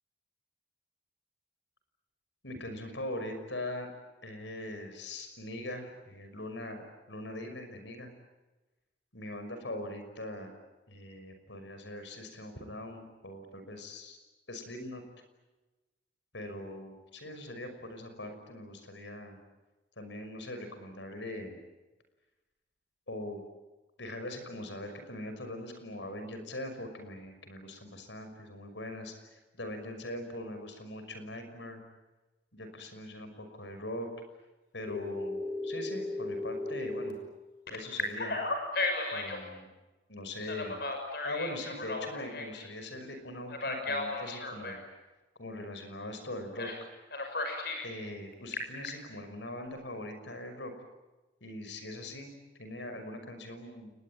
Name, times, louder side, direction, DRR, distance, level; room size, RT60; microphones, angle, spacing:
voice 1, 2.4-3.9 4.2-8.1 9.1-10.5 10.9-14.2 14.5-15.0 16.3-19.4 20.0-21.6 23.1-23.4 24.0-31.8 32.5-34.1 34.7-37.2 37.7-38.4 39.1-39.7 40.1-44.8 45.4-46.7 47.8-50.7 51.4-53.9, left 1 dB, 80° left, 8 dB, 5.9 m, -41 dB
Telephone, 34.9-37.1 37.7-39.4 40.4-42.7 43.5-44.8 46.6-46.8 47.1-47.9 48.3-48.9, left 2 dB, 60° left, 6.1 m, -35 dB
29.5 x 21.0 x 9.0 m, 1.1 s
head